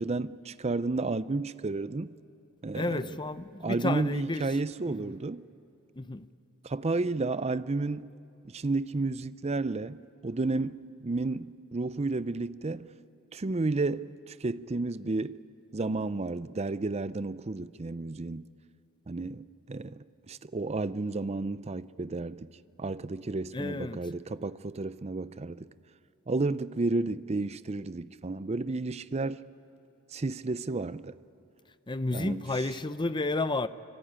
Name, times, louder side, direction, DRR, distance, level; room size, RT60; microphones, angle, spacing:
voice 1, 0.0-2.2 2.6-3.2 3.6-5.4 6.6-8.1 8.5-12.9 13.3-15.4 15.7-18.5 19.1-22.5 22.8-25.7 26.3-29.4 30.1-31.1 32.1-32.4, right 3 dB, 30° right, 0.5 m, -32 dB
voice 2, 2.7-4.6 4.8-5.1 6.0-6.3 23.5-24.0 31.9-33.7, left 2 dB, 20° left, 0.6 m, -31 dB
25.0 x 24.5 x 8.9 m
head